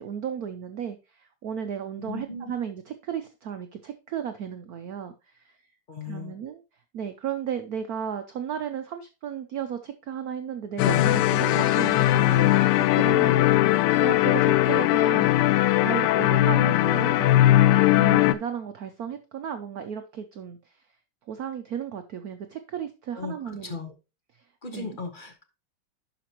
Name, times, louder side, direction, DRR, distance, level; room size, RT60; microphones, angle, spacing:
voice 1, 0.0-5.5 6.0-6.6 6.9-12.5 12.8-15.5 15.8-17.5 17.9-20.8 21.3-23.8 24.7-25.0, right 8 dB, 85° right, 8 dB, 0.8 m, -34 dB
voice 2, 2.0-2.5 5.9-6.3 10.8-11.1 23.1-23.9 24.6-25.4, left 4 dB, 35° left, 5 dB, 0.8 m, -36 dB
sound 1, 10.8-18.3, left 14 dB, 90° left, 1.5 m, -20 dB
11.0 x 5.1 x 2.9 m, 0.28 s
omnidirectional pair, 2.4 m